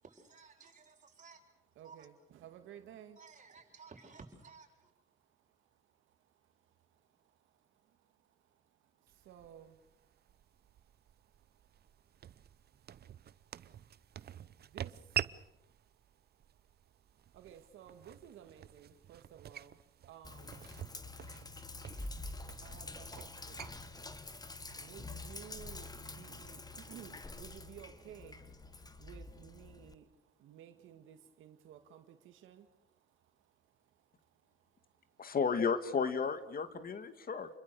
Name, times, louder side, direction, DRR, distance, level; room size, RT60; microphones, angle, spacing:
voice 1, 0.0-1.4 1.8-2.1 3.2-4.9, right 5 dB, 40° right, 2 dB, 6.4 m, -56 dB
voice 2, 1.8-2.1 2.4-3.2 9.2-9.8 14.5-15.2 17.3-20.7 22.6-24.0 24.7-28.4 29.0-30.1 30.4-32.7, right 10 dB, 85° right, 7 dB, 2.0 m, -54 dB
sound 1, 9.1-25.2, right 10 dB, 55° right, 0.8 m, -47 dB
Sink (filling or washing), 20.2-29.9, left 2 dB, 20° left, 1.8 m, -47 dB
voice 3, 35.2-37.5, left 5 dB, 45° left, 11 dB, 1.9 m, -33 dB
29.0 x 22.0 x 6.8 m, 0.86 s
cardioid pair, 90°, 20 cm